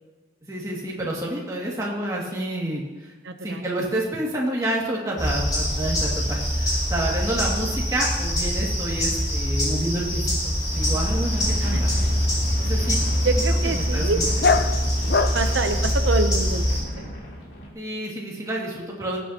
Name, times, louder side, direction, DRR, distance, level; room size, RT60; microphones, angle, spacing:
voice 1, 0.5-3.1 3.4-11.9 12.6-13.0 13.6-14.2 17.7-19.2, right 1 dB, 20° right, -4 dB, 2.1 m, -29 dB
voice 2, 3.2-3.7 11.6-11.8 12.6-12.9 13.2-14.2 15.3-17.1, right 3 dB, 80° right, 7 dB, 0.7 m, -27 dB
sound 1, 5.2-16.8, equal, 20° left, 4.0 m, -24 dB
sound 2, 10.7-17.7, equal, 75° left, 3.3 m, -37 dB
Dog, 11.3-16.6, left 4 dB, 55° left, 0.5 m, -29 dB
18.0 x 8.4 x 2.9 m, 1.2 s
head